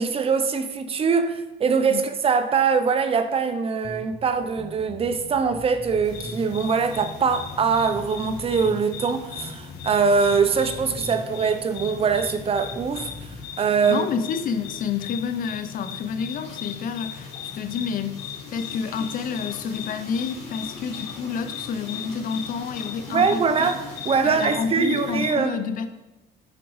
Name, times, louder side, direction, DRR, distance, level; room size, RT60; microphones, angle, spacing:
voice 1, 0.0-13.1 13.6-14.1 23.1-25.5, right 5 dB, 35° right, 0.6 m, -23 dB
sound 1, 3.8-13.4, left 1 dB, 15° left, 0.7 m, -41 dB
sound 2, 6.0-25.3, left 7 dB, 85° left, 1.1 m, -38 dB
voice 2, 13.9-18.2 18.5-23.7 24.2-25.9, left 6 dB, 55° left, 0.6 m, -29 dB
sound 3, 15.9-24.4, left 3 dB, 40° left, 2.4 m, -44 dB
8.1 x 5.1 x 3.1 m
cardioid pair, 110°, 17 cm